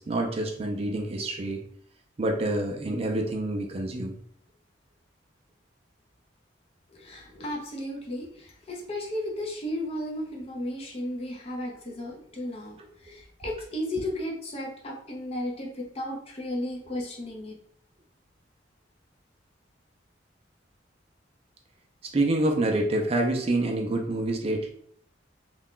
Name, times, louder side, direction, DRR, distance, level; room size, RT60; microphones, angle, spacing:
voice 1, 0.0-1.6 2.2-4.2 22.1-24.7, right 1 dB, 35° right, 2 dB, 0.4 m, -27 dB
voice 2, 6.9-17.6, left 1 dB, 35° left, -2 dB, 0.6 m, -34 dB
2.3 x 2.1 x 3.6 m, 0.64 s
head